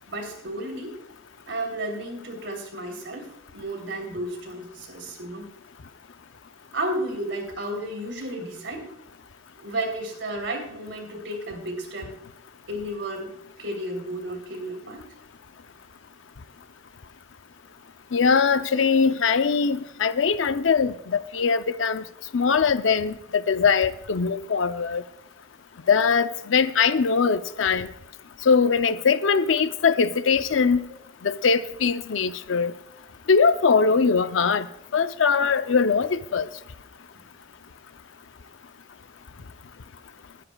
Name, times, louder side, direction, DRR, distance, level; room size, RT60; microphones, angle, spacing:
voice 1, 0.1-0.9 1.5-5.5 6.7-8.8 9.6-12.1 12.7-13.3 13.6-15.0 37.1-37.2, right 1 dB, 75° right, 3.4 m, -32 dB
voice 2, 18.1-22.0 22.3-25.0 25.9-27.9 28.5-30.8 31.2-32.7 33.3-34.7 34.9-36.5, left 5 dB, 90° left, 0.6 m, -21 dB
21.5 x 10.0 x 2.3 m
head